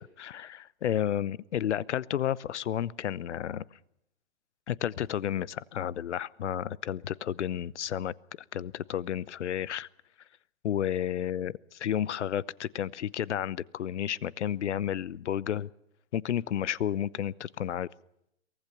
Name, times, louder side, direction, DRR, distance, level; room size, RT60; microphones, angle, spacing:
voice 1, 0.0-3.6 4.7-8.1 8.5-9.9 10.6-15.7 16.1-17.9, left 10 dB, 85° left, 21 dB, 0.8 m, -31 dB
23.5 x 19.5 x 6.8 m, 0.79 s
hypercardioid pair, 150°, 34 cm